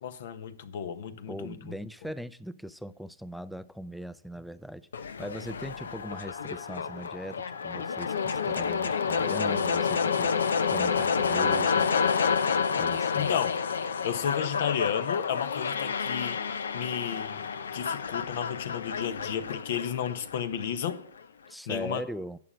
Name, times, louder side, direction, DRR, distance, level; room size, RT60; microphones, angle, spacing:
voice 1, 0.0-1.8 13.1-13.5 14.0-16.4 16.7-17.5 17.7-21.0 21.7-22.0, left 8 dB, 60° left, 1.1 m, -32 dB
voice 2, 1.3-11.9 12.7-13.3 21.5-22.4, equal, ahead, 0.4 m, -40 dB
sound 1, 4.9-20.9, left 6 dB, 85° left, 0.7 m, -29 dB
11.0 x 7.7 x 6.2 m
hypercardioid pair, 140°, 0 cm